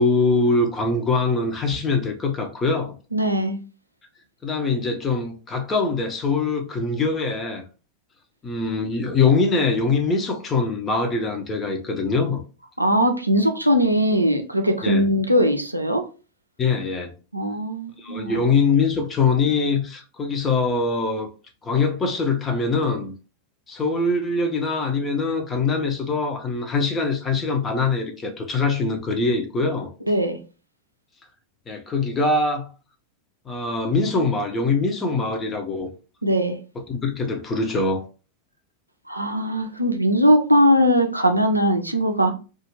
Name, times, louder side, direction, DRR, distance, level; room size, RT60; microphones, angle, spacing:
voice 1, 0.0-3.0 4.4-7.6 8.4-12.4 14.8-15.1 16.6-17.1 18.0-21.3 21.6-23.1 23.7-29.9 31.7-32.7 33.5-35.9 36.9-38.1, left 4 dB, 20° left, 0.7 m, -23 dB
voice 2, 3.1-3.6 12.8-16.0 17.3-18.5 30.1-30.4 36.2-36.6 39.1-42.3, equal, 85° right, 0.4 m, -20 dB
2.4 x 2.4 x 3.1 m
figure-of-eight pair, 90°, 0 cm